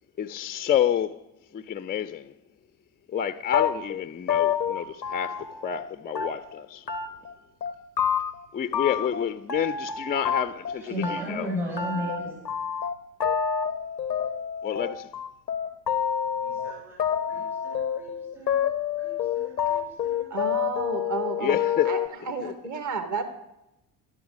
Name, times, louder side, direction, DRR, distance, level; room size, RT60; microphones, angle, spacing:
voice 1, 0.2-1.2 1.5-2.3 3.1-6.9 8.5-11.5 14.6-15.1 21.4-21.9 22.2-22.5, left 9 dB, 20° left, 0.5 m, -29 dB
sound 1, 3.5-5.9 6.1-6.6 6.9-7.3 7.6-8.4 8.7-10.8 11.0-22.1, left 8 dB, 90° left, 0.7 m, -28 dB
voice 2, 10.7-12.3 16.2-18.7 19.0-20.3, left 1 dB, 65° right, 7.3 m, -36 dB
voice 3, 20.3-21.6 21.9-22.0 22.3-23.3, right 4 dB, 35° right, 1.8 m, -31 dB
18.5 x 12.5 x 5.0 m
figure-of-eight pair, 50°, 50 cm